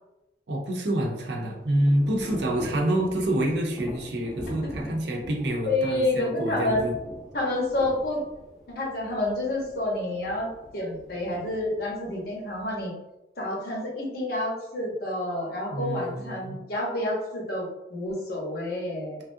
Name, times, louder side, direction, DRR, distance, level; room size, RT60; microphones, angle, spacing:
voice 1, 0.5-7.0 15.7-16.6, right 1 dB, 65° right, 0 dB, 0.6 m, -27 dB
Thunder / Rain, 0.8-12.8, equal, ahead, 0.5 m, -43 dB
voice 2, 5.7-6.8 7.3-8.2 8.7-12.9 13.4-19.2, left 2 dB, 55° left, -2 dB, 0.8 m, -29 dB
3.2 x 2.4 x 2.6 m, 0.96 s
head